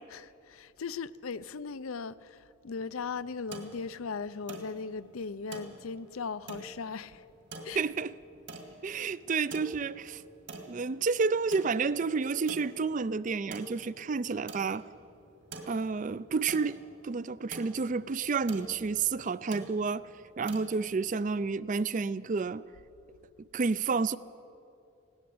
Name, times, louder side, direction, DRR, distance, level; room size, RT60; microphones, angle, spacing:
voice 1, 0.1-7.2 7.6-7.8, left 5 dB, 80° left, 0.6 m, -38 dB
sound 1, 2.8-21.5, right 2 dB, 55° right, 2.1 m, -48 dB
voice 2, 7.7-8.1 8.8-10.2 10.7-14.9 15.7-16.8 17.0-20.1 20.4-22.6 23.4-24.2, right 4 dB, 35° right, 0.4 m, -30 dB
19.5 x 17.0 x 7.8 m
head